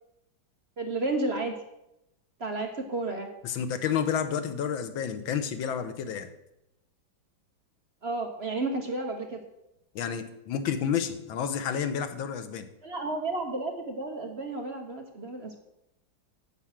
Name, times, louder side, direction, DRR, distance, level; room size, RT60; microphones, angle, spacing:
voice 1, 0.8-1.5 2.4-3.3 8.0-9.4 12.8-15.6, right 2 dB, 40° right, 3 dB, 1.1 m, -32 dB
voice 2, 3.4-6.3 9.9-12.7, left 8 dB, 85° left, 9 dB, 1.6 m, -30 dB
9.8 x 7.6 x 5.9 m, 0.86 s
omnidirectional pair, 2.1 m